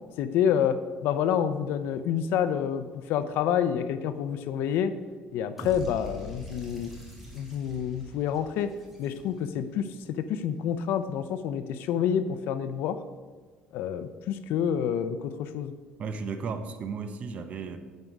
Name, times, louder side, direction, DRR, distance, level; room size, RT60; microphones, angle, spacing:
voice 1, 0.2-4.9 5.3-6.9 7.3-8.7 9.0-13.0 13.7-15.7, left 8 dB, 75° left, 12 dB, 0.5 m, -28 dB
sound 1, 5.6-9.7, left 1 dB, 5° right, 1.8 m, -44 dB
voice 2, 16.0-17.8, right 5 dB, 40° right, 8 dB, 0.7 m, -34 dB
9.5 x 4.6 x 5.3 m, 1.5 s
cardioid pair, 160°, 4 cm